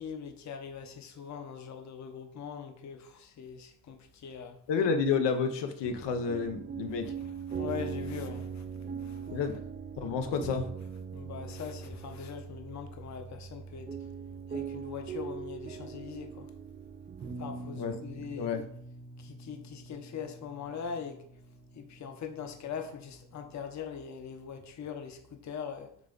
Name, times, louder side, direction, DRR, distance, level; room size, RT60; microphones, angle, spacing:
voice 1, 0.0-4.6 7.0-9.3 11.1-14.1 14.5-16.5 17.2-18.5 19.2-25.9, left 7 dB, 45° left, 0.7 m, -42 dB
voice 2, 4.7-7.1 9.3-9.6 10.0-10.7 17.8-17.9 18.3-18.6, left 5 dB, 85° left, 0.8 m, -30 dB
sound 1, 5.8-23.7, right 6 dB, 25° right, 0.3 m, -42 dB
7.2 x 3.4 x 3.8 m
cardioid pair, 150°, 41 cm